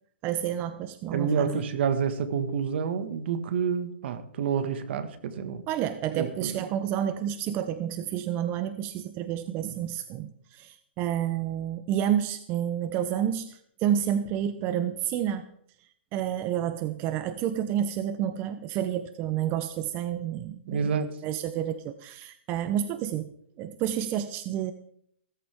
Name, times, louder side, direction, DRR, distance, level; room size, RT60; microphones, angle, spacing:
voice 1, 0.2-1.5 5.7-15.5 15.8-23.3 23.6-24.7, right 10 dB, 30° right, 11 dB, 0.7 m, -30 dB
voice 2, 1.1-5.6 6.1-6.6 20.7-21.2, right 6 dB, 60° right, 10 dB, 1.8 m, -28 dB
16.5 x 14.0 x 3.6 m, 0.68 s
hypercardioid pair, 140°, 7 cm